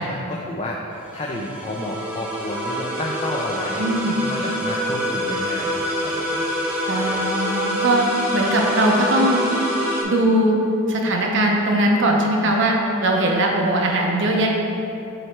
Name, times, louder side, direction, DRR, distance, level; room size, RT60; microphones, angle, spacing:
voice 1, 0.0-3.8 4.3-6.5 6.8-7.3 13.7-13.8, left 1 dB, 30° left, -2 dB, 0.4 m, -31 dB
sound 1, 0.9-10.0, equal, 5° right, 0.9 m, -26 dB
voice 2, 3.8-4.3 6.9-8.0 8.3-9.5 10.0-10.6 10.9-14.5, right 1 dB, 65° right, 0 dB, 0.7 m, -20 dB
7.8 x 3.1 x 4.4 m, 2.7 s
head